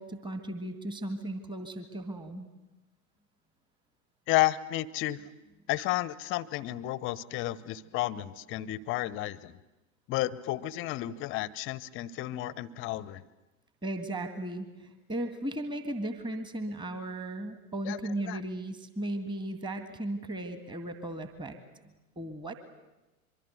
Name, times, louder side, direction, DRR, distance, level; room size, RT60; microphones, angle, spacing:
voice 1, 0.0-2.5 13.8-22.5, right 1 dB, 10° right, 8 dB, 1.9 m, -36 dB
voice 2, 4.3-5.2 5.7-9.6 10.1-13.2 17.9-18.0 18.3-18.4, left 16 dB, 30° left, 20 dB, 0.8 m, -32 dB
24.5 x 23.5 x 8.0 m, 1.0 s
figure-of-eight pair, 95°, 44 cm